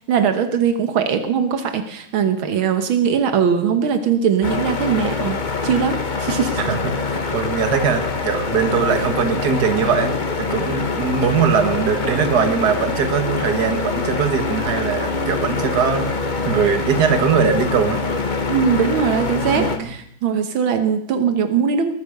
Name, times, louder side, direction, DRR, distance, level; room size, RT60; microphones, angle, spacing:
voice 1, 0.1-6.6 18.5-21.9, right 7 dB, 80° right, 8 dB, 1.9 m, -20 dB
sound 1, 4.4-19.8, left 4 dB, 30° left, 1.1 m, -24 dB
voice 2, 7.0-10.1 10.4-18.0 19.4-19.9, right 6 dB, 55° right, 7 dB, 2.0 m, -21 dB
19.5 x 9.6 x 6.6 m, 0.69 s
omnidirectional pair, 2.2 m